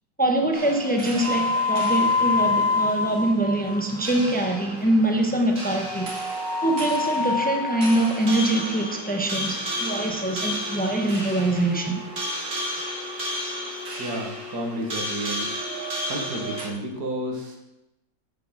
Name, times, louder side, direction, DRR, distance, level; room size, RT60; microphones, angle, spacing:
voice 1, 0.2-6.1 6.6-12.0, right 1 dB, 5° left, 3 dB, 0.8 m, -24 dB
sound 1, 0.5-16.7, left 2 dB, 45° right, 2.4 m, -29 dB
voice 2, 14.0-15.5 16.1-17.6, right 1 dB, 60° right, 1 dB, 2.3 m, -31 dB
9.4 x 6.8 x 6.5 m, 0.93 s
omnidirectional pair, 1.9 m